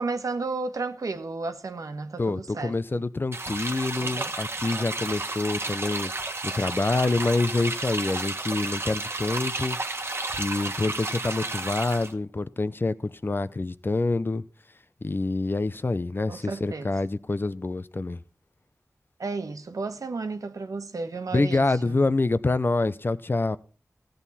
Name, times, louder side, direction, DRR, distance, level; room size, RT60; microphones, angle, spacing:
voice 1, 0.0-2.8 4.0-4.3 16.3-16.9 19.2-22.0, right 3 dB, 80° right, 1.4 m, -33 dB
voice 2, 2.2-6.1 6.4-14.4 15.0-18.2 21.3-23.6, left 3 dB, 40° left, 0.7 m, -27 dB
sound 1, 3.3-12.1, right 2 dB, 45° right, 1.4 m, -32 dB
15.5 x 9.2 x 4.2 m
wide cardioid pair, 90°, 6 cm